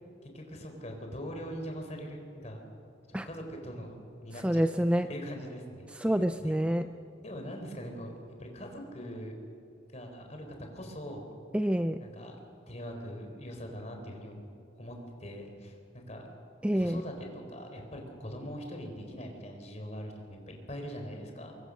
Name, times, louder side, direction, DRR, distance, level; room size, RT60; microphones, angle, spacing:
voice 1, 0.2-2.6 3.1-3.9 4.2-4.7 5.1-6.1 6.4-6.8 7.2-9.3 9.9-11.3 12.0-12.4 12.7-14.5 14.8-16.3 16.7-21.5, equal, 35° left, 3 dB, 4.1 m, -42 dB
voice 2, 4.4-5.1 6.0-6.8 11.5-12.1 16.6-17.0, equal, 5° right, 9 dB, 0.4 m, -27 dB
23.5 x 22.5 x 6.5 m, 2.7 s
head